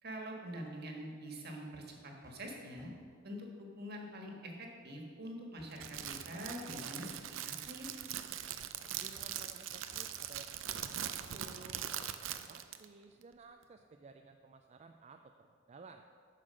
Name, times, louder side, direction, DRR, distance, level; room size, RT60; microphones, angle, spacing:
voice 1, 0.0-2.9 3.2-7.9, equal, 55° right, 1 dB, 1.7 m, -45 dB
sound 1, 1.7-1.9 2.2-2.5 2.8-3.2 5.6-7.0 7.4-7.5 9.2-12.8 13.1-13.2, left 1 dB, 20° right, 1.5 m, -62 dB
Crackle, 5.7-12.9, right 10 dB, 90° right, 0.5 m, -42 dB
voice 2, 9.0-16.1, right 4 dB, 35° right, 5 dB, 0.4 m, -56 dB
9.7 x 6.5 x 6.4 m, 2.1 s
head